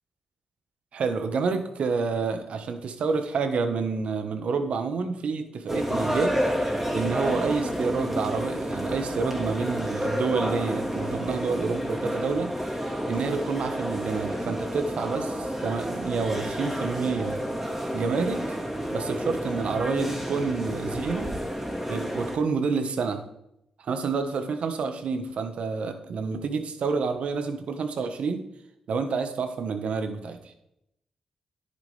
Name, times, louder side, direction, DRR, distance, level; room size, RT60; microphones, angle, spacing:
voice 1, 0.9-6.3 6.9-12.5 13.1-17.4 17.9-18.6 18.9-21.3 21.9-23.2 23.8-28.4 28.9-30.4, right 5 dB, 70° right, 7 dB, 1.3 m, -28 dB
sound 1, 5.7-22.4, equal, 15° right, 3.1 m, -30 dB
10.5 x 9.7 x 3.4 m, 0.80 s
hypercardioid pair, 40°, 2 cm